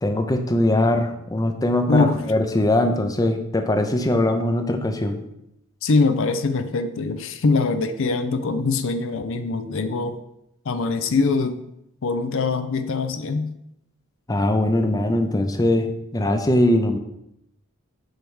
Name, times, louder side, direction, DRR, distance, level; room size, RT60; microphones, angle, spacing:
voice 1, 0.0-5.2 14.3-17.0, left 1 dB, 15° left, 6 dB, 0.6 m, -21 dB
voice 2, 1.9-2.2 5.8-10.2 10.7-11.7 12.0-13.5, left 3 dB, 60° left, 10 dB, 0.5 m, -22 dB
8.0 x 3.4 x 6.2 m, 0.81 s
head